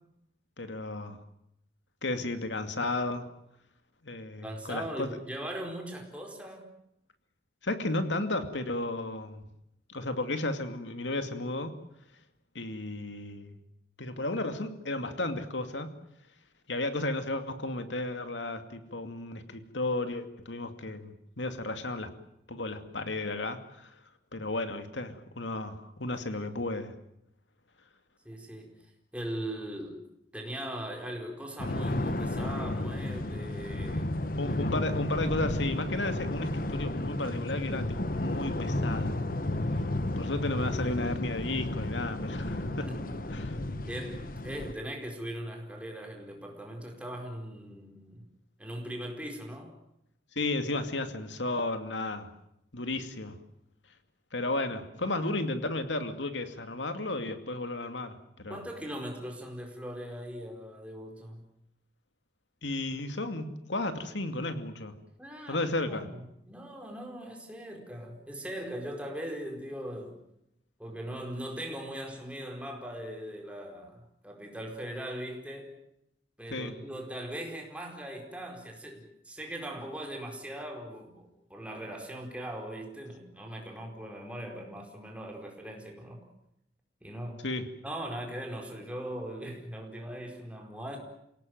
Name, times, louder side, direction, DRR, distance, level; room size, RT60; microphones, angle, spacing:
voice 1, 0.6-1.2 2.0-3.2 4.0-5.2 7.6-9.4 9.9-11.7 12.5-13.6 14.0-15.9 16.7-22.1 22.5-23.9 24.3-26.9 34.4-39.2 39.7-39.8 40.2-42.9 43.3-43.6 50.4-52.3 52.7-53.4 54.3-58.6 62.6-64.9 65.5-66.1 76.5-76.7 87.4-87.7, left 2 dB, 90° left, 8 dB, 2.5 m, -33 dB
voice 2, 4.4-6.7 23.0-23.1 26.3-26.5 28.2-28.9 29.1-30.0 30.3-34.1 34.5-34.7 39.7-39.9 42.6-43.1 43.4-48.3 48.6-49.8 58.5-61.4 65.2-70.2 70.8-75.7 76.4-86.2 87.0-87.5 87.8-91.0, right 1 dB, 5° right, 1 dB, 4.7 m, -40 dB
sound 1, 31.6-44.7, left 1 dB, 50° left, 1.2 m, -32 dB
28.0 x 18.0 x 9.5 m, 0.80 s
head